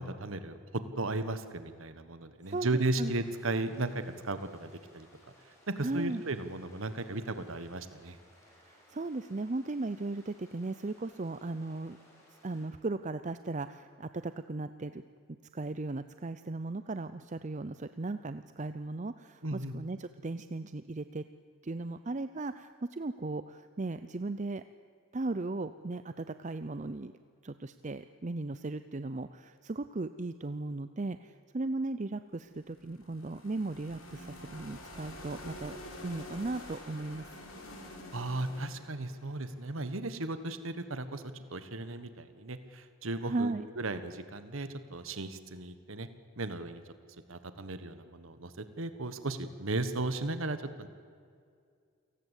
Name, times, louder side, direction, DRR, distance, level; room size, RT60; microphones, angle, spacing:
voice 1, 0.0-5.1 5.7-8.2 19.4-19.7 38.1-41.2 41.5-46.1 46.4-46.8 47.3-50.9, right 2 dB, 75° right, 11 dB, 1.4 m, -35 dB
sound 1, 2.4-12.7, left 1 dB, 15° left, 6.5 m, -62 dB
voice 2, 5.8-6.2 8.5-12.0 12.4-15.0 15.5-21.2 21.6-24.6 25.1-27.1 27.4-35.8 36.0-37.4 43.2-43.7, right 2 dB, 35° right, 12 dB, 0.5 m, -37 dB
sound 2, 32.4-40.4, left 1 dB, 80° left, 5.2 m, -48 dB
28.5 x 18.5 x 8.3 m, 2.2 s
head